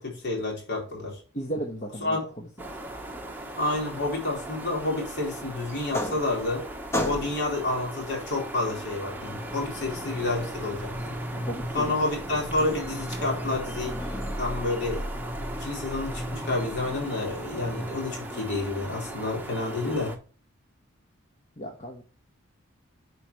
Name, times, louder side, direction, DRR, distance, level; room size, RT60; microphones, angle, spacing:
voice 1, 0.0-1.2 2.0-2.2 3.6-6.6 7.0-11.1 11.7-14.0 14.4-15.0 15.6-20.2, left 2 dB, 55° left, 3.9 m, -29 dB
voice 2, 1.3-2.5 11.3-11.9 21.6-22.0, right 1 dB, 35° left, 1.2 m, -35 dB
sound 1, 2.6-20.2, right 1 dB, 10° right, 1.0 m, -39 dB
sound 2, 5.7-6.6 6.9-7.6 8.7-18.1, equal, 10° left, 1.3 m, -35 dB
9.7 x 4.9 x 3.1 m
head